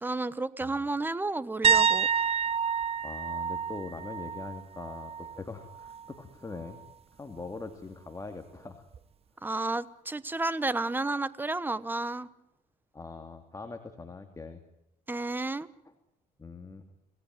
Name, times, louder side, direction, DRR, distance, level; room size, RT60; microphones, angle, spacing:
voice 1, 0.0-2.1 9.4-12.3 15.1-15.7, right 2 dB, 10° right, 17 dB, 1.2 m, -31 dB
sound 1, 1.6-5.4 5.7-6.1 8.9-9.0, right 7 dB, 35° right, 0.9 m, -28 dB
voice 2, 3.0-6.8 7.2-8.8 12.9-14.6 16.4-16.8, left 3 dB, 20° left, 6 dB, 2.5 m, -42 dB
27.5 x 17.5 x 9.3 m, 0.83 s
cardioid pair, 110°, 17 cm